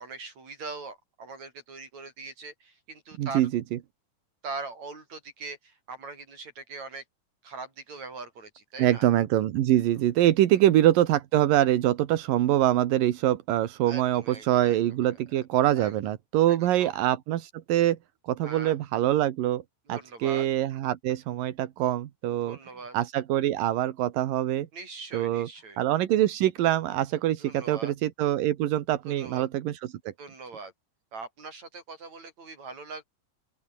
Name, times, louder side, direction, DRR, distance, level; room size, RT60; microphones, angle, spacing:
voice 1, 0.0-3.5 4.4-7.0 7.4-9.1 10.5-10.6 13.9-15.1 15.7-16.0 16.5-16.9 18.4-18.8 19.9-20.5 22.4-23.0 24.7-25.8 27.4-27.9 29.0-29.5 30.2-30.7 31.1-33.0, right 4 dB, 55° right, 7.9 m, -41 dB
voice 2, 3.2-3.8 8.8-18.0 18.2-19.6 19.9-22.6 22.9-24.7 25.1-25.5 25.8-30.1, right 13 dB, 85° right, 3.0 m, -24 dB
open air
omnidirectional pair, 3.8 m